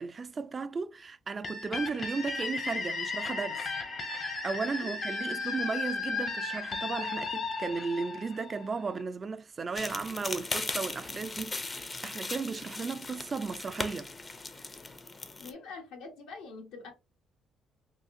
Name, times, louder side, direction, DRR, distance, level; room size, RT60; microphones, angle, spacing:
voice 1, 0.0-3.6 4.1-14.1, right 4 dB, 35° right, 0.3 m, -35 dB
sound 1, 1.4-9.0, left 4 dB, 50° left, 0.8 m, -35 dB
sound 2, 9.8-15.5, left 3 dB, 30° left, 0.5 m, -38 dB
voice 2, 15.4-16.9, left 4 dB, 85° left, 1.1 m, -44 dB
3.8 x 2.4 x 2.5 m
supercardioid pair, 80°, 0 cm